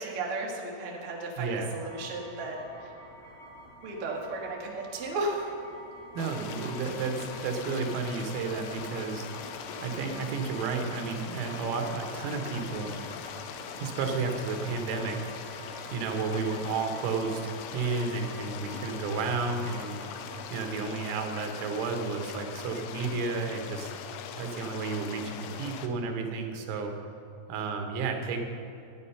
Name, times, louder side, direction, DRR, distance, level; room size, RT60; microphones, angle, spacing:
voice 1, 0.0-2.9 3.8-5.6, right 2 dB, 60° right, -2 dB, 1.5 m, -34 dB
voice 2, 1.4-1.7 6.2-9.5 9.8-13.0 13.8-15.5 15.9-20.0 20.5-23.9 24.4-26.9 27.5-28.4, right 4 dB, 90° right, 4 dB, 3.9 m, -32 dB
sound 1, 1.6-20.4, right 1 dB, 60° left, 5.6 m, -49 dB
sound 2, 6.2-25.9, left 7 dB, 85° left, 2.4 m, -41 dB
15.0 x 9.5 x 5.6 m, 2.7 s
omnidirectional pair, 5.7 m